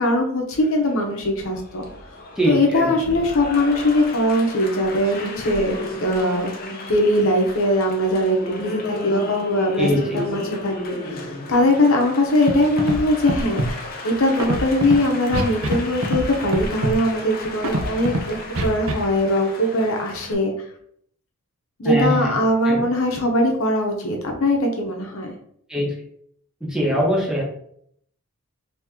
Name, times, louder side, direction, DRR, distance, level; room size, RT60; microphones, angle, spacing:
voice 1, 0.0-1.9 2.5-9.9 10.1-20.5 21.8-25.3, left 1 dB, 65° left, 2 dB, 0.8 m, -21 dB
Applause, 0.6-20.3, left 2 dB, 45° left, 0.6 m, -34 dB
voice 2, 2.4-2.9 9.8-10.2 21.8-22.3 22.7-22.8 25.7-25.9 26.6-27.4, equal, 5° right, -3 dB, 0.9 m, -22 dB
Scratching (performance technique), 12.5-12.6 12.8-13.0 13.3-13.7 14.4-15.0 15.3-15.8 16.0-16.3 16.5-16.9 17.6-18.2 18.6-18.9, right 1 dB, 70° right, 0.6 m, -23 dB
2.9 x 2.9 x 3.6 m, 0.67 s
head